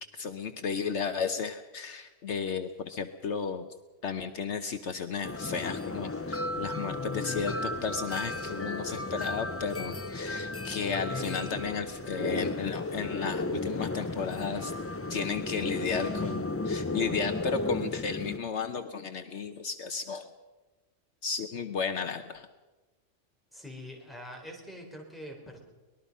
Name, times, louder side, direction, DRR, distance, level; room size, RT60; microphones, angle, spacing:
voice 1, 0.1-3.7 4.0-14.7 15.1-20.3 21.2-22.5, left 6 dB, 65° left, 8 dB, 1.1 m, -34 dB
sound 1, 5.2-18.4, left 2 dB, 20° left, 0.4 m, -34 dB
voice 2, 23.5-25.6, equal, ahead, 0 dB, 4.2 m, -44 dB
24.0 x 20.0 x 5.5 m, 1.2 s
omnidirectional pair, 1.3 m